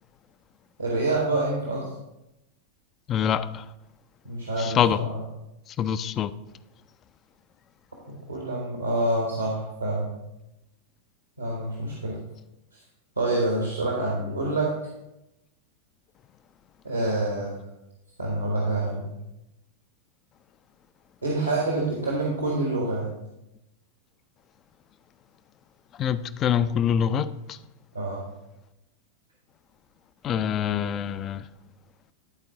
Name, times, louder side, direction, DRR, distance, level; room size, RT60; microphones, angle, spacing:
voice 1, 0.8-1.9 4.2-5.2 8.1-10.1 11.4-12.2 13.2-14.7 16.8-17.5 18.2-19.1 21.2-23.1 27.9-28.2, right 2 dB, 85° right, 1.3 m, -27 dB
voice 2, 3.1-3.6 4.6-5.0 5.8-6.3 26.0-27.6 30.2-31.4, left 8 dB, 30° left, 0.3 m, -25 dB
11.0 x 4.4 x 3.8 m
figure-of-eight pair, 90°, 0 cm